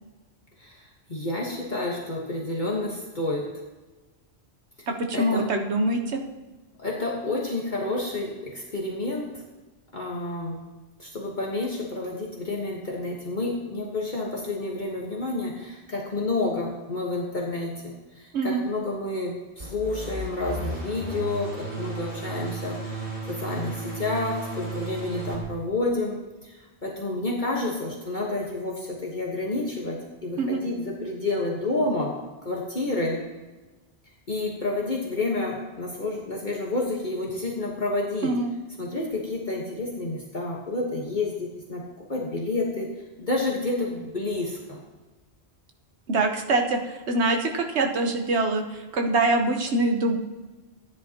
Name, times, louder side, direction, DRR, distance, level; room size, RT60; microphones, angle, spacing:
voice 1, 0.6-3.6 4.8-4.9 5.1-5.5 6.8-9.4 9.9-10.6 11.0-33.2 34.3-38.4 38.8-44.8, left 2 dB, 45° left, -2 dB, 1.5 m, -30 dB
voice 2, 4.9-6.2 18.3-18.6 30.4-30.6 38.2-38.5 46.1-46.8 47.1-50.2, right 2 dB, 85° right, 4 dB, 1.3 m, -24 dB
sound 1, 19.6-25.4, right 2 dB, 60° right, 3.9 m, -34 dB
14.5 x 10.5 x 2.9 m, 1.2 s
omnidirectional pair, 1.1 m